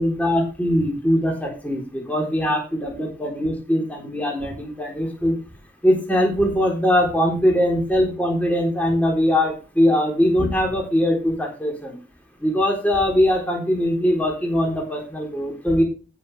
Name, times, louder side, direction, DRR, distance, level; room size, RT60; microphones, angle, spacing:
voice 1, 0.0-5.4 5.8-12.0 12.4-15.8, equal, 10° left, -1 dB, 3.8 m, -21 dB
16.5 x 6.9 x 3.4 m, 0.34 s
head